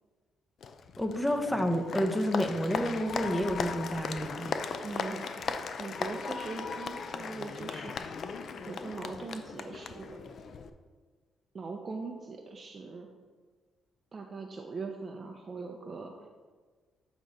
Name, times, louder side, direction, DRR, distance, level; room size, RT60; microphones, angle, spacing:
Applause, 0.6-10.7, left 5 dB, 50° left, 0.4 m, -37 dB
voice 1, 1.0-4.5, equal, 5° left, 6 dB, 0.6 m, -30 dB
voice 2, 4.8-8.2 8.6-10.2 11.5-13.1 14.1-16.3, right 4 dB, 35° right, 2 dB, 0.5 m, -41 dB
8.4 x 3.0 x 5.2 m, 1.5 s
cardioid pair, 120°, 0 cm